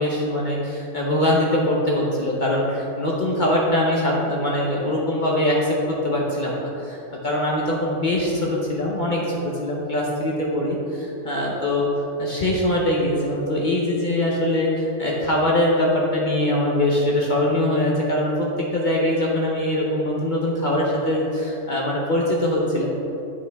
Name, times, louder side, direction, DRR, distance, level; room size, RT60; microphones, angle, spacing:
voice 1, 0.0-22.9, left 1 dB, 45° left, -3 dB, 0.9 m, -22 dB
8.9 x 5.0 x 3.4 m, 2.9 s
omnidirectional pair, 1.2 m